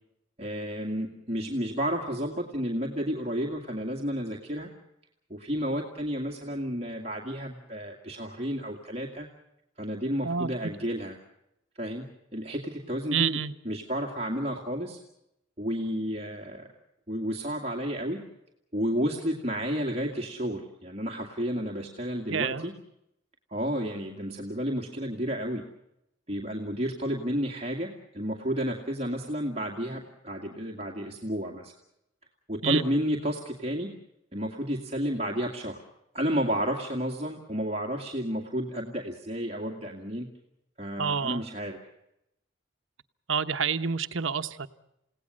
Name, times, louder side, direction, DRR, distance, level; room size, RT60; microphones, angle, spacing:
voice 1, 0.4-4.7 5.3-9.3 9.8-11.2 11.8-13.4 13.7-15.0 15.6-16.7 17.1-18.3 18.7-22.7 23.5-25.6 26.3-31.7 32.5-34.0 34.3-35.8 36.1-40.3 40.8-41.8, equal, 30° right, 2.2 m, -31 dB
voice 2, 10.2-10.7 13.1-13.5 22.3-22.6 32.6-32.8 41.0-41.4 43.3-44.7, right 6 dB, 90° right, 1.1 m, -28 dB
29.5 x 17.5 x 6.4 m
head